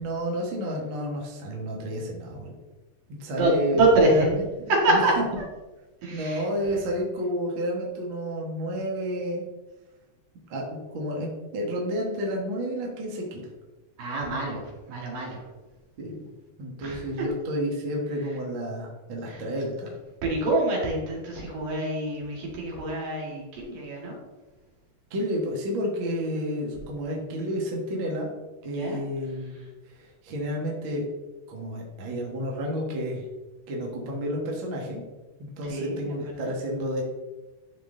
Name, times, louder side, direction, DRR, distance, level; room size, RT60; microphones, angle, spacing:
voice 1, 0.0-2.5 3.1-4.4 4.9-5.0 6.1-9.4 10.5-13.4 16.0-16.2 16.6-19.9 25.1-28.3 28.6-31.0 31.5-33.2 33.7-35.0 35.4-37.0, equal, 45° right, -2 dB, 1.6 m, -31 dB
voice 2, 3.4-4.3 4.7-5.5 6.0-6.5 14.0-15.4 16.8-17.0 19.3-19.4 20.2-24.2 28.7-29.0 35.6-36.5, right 2 dB, 65° right, -2 dB, 3.6 m, -26 dB
12.5 x 4.6 x 3.9 m, 1.1 s
omnidirectional pair, 4.4 m